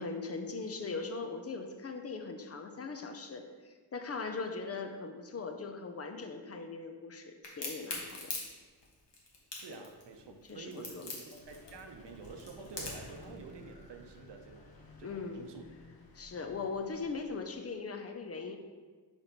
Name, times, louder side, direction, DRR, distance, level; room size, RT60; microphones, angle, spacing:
voice 1, 0.0-8.3 10.5-11.0 15.0-15.5 16.1-18.6, left 4 dB, 40° left, 5 dB, 0.4 m, -40 dB
Crack, 7.4-13.1, left 3 dB, 85° left, 1.3 m, -42 dB
voice 2, 9.5-14.7 15.0-15.6, right 5 dB, 90° right, 5 dB, 0.7 m, -49 dB
Vehicle, 11.3-17.7, left 2 dB, 60° left, 0.8 m, -55 dB
4.4 x 4.3 x 5.1 m, 1.4 s
wide cardioid pair, 175°, 41 cm